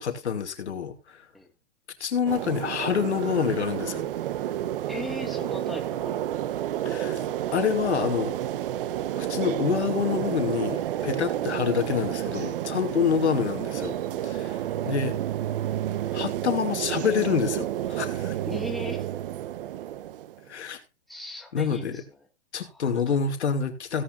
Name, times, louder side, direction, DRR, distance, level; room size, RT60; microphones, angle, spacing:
voice 1, 0.0-1.2 2.0-4.0 6.8-7.3 7.5-8.4 9.2-14.0 14.2-15.2 16.1-18.4 20.5-20.8 21.5-22.0 22.5-24.0, left 7 dB, 80° left, 2.5 m, -27 dB
sound 1, 2.3-20.5, right 12 dB, 55° right, 1.1 m, -30 dB
voice 2, 4.9-6.1 14.6-14.9 18.5-19.1 21.1-22.0 22.7-23.2, left 1 dB, ahead, 1.8 m, -38 dB
17.0 x 8.8 x 2.6 m
hypercardioid pair, 135°, 33 cm